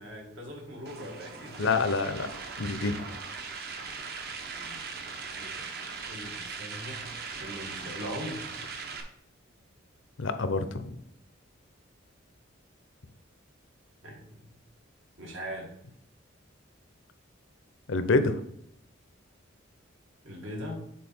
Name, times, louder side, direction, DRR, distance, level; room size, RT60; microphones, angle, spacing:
voice 1, 0.0-1.7 2.8-3.0 4.4-4.8 5.2-5.7 6.1-7.0 7.4-8.5 14.0-14.5 15.2-15.7 20.2-20.9, equal, 75° right, 0 dB, 2.1 m, -41 dB
sound 1, 0.9-9.0, right 4 dB, 50° right, 1.0 m, -39 dB
voice 2, 1.6-2.3 2.6-3.1 10.2-11.0 17.9-18.4, left 3 dB, 75° left, 10 dB, 0.7 m, -27 dB
7.4 x 4.2 x 4.4 m, 0.73 s
head